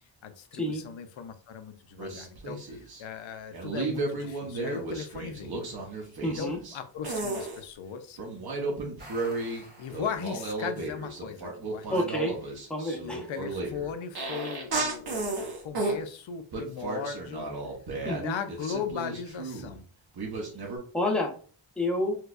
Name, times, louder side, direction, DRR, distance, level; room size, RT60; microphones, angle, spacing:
voice 1, 0.2-5.6 6.0-8.2 9.4-12.0 13.0-17.5 18.0-19.8, left 7 dB, 80° left, 8 dB, 0.6 m, -38 dB
sound 1, 2.0-3.0 3.5-6.8 7.0-7.6 8.2-9.6 9.9-16.0 16.5-19.8 20.2-20.8, right 3 dB, 50° right, 1.1 m, -34 dB
voice 2, 6.2-6.6 11.9-12.3 12.7-13.2 18.0-18.3 20.9-21.3 21.8-22.2, left 1 dB, ahead, 0 dB, 0.6 m, -28 dB
sound 2, 9.0-10.8, right 2 dB, 20° right, 1.2 m, -51 dB
4.5 x 2.2 x 2.4 m, 0.42 s
wide cardioid pair, 140°, 46 cm